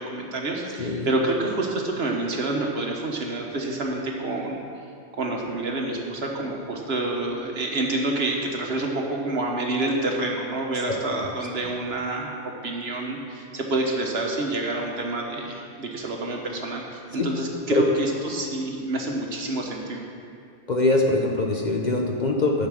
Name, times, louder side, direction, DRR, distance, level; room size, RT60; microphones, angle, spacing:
voice 1, 0.0-4.6 5.2-12.4 12.6-20.0, right 2 dB, 55° right, 0 dB, 1.4 m, -28 dB
voice 2, 0.8-1.1 10.9-11.0 17.1-17.3 17.7-17.8 20.7-22.7, left 2 dB, 40° left, 1 dB, 0.8 m, -23 dB
10.5 x 6.5 x 6.4 m, 2.4 s
omnidirectional pair, 1.3 m